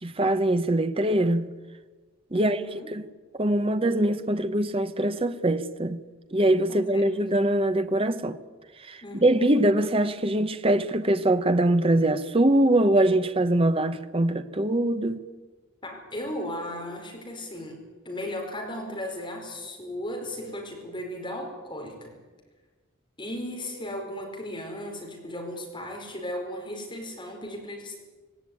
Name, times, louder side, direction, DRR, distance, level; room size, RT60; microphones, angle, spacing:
voice 1, 0.0-1.5 2.3-2.6 2.9-3.0 3.3-6.0 6.3-8.4 8.8-15.2, right 1 dB, 25° right, 0.9 m, -23 dB
voice 2, 2.3-2.9 6.7-7.1 9.0-9.5 15.8-17.8 18.0-22.1 23.2-28.0, left 1 dB, 20° left, 4.7 m, -36 dB
19.0 x 18.0 x 9.6 m
head